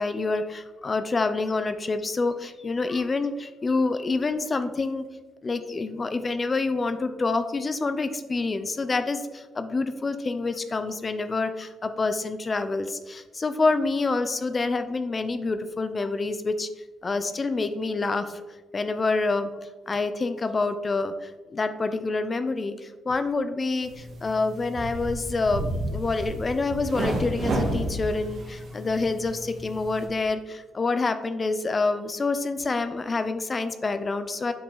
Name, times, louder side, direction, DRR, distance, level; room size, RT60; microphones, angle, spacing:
voice 1, 0.0-5.1 5.4-16.7 17.0-18.4 18.7-34.5, left 3 dB, 30° left, 10 dB, 0.5 m, -27 dB
sound 1, 23.8-30.1, right 1 dB, 60° right, 1.6 m, -32 dB
7.4 x 4.7 x 3.9 m, 1.2 s
cardioid pair, 90°, 0 cm